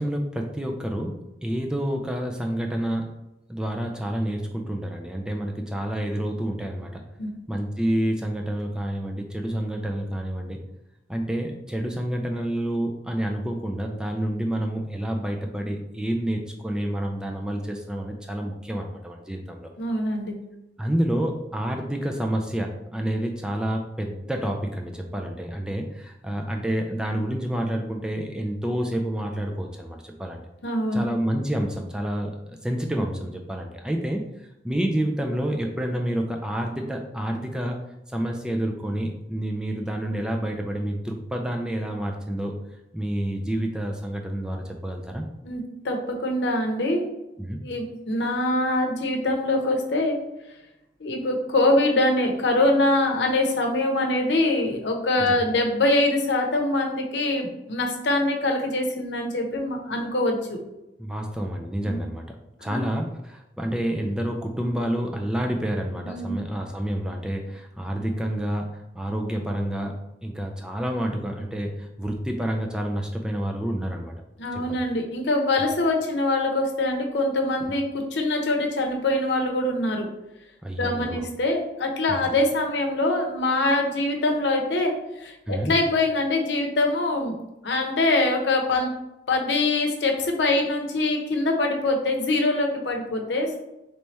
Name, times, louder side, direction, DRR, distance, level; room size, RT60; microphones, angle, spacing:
voice 1, 0.0-3.1 3.5-7.0 7.5-10.6 11.1-19.7 20.8-30.4 30.9-34.2 34.6-37.8 38.1-42.5 42.9-45.2 47.4-47.6 55.3-55.4 61.0-62.2 62.6-69.9 70.2-74.1 74.5-74.8 80.6-81.3 82.1-82.3 85.5-85.7, right 1 dB, 5° right, 2 dB, 0.3 m, -28 dB
voice 2, 19.8-20.3 30.6-31.0 45.4-47.1 47.6-50.2 51.0-60.6 61.8-62.0 62.6-62.8 66.0-66.4 74.4-80.1 80.8-84.9 85.2-87.3 87.6-88.9 89.3-93.5, left 2 dB, 75° left, 2 dB, 0.8 m, -24 dB
3.3 x 3.2 x 4.1 m, 0.92 s
head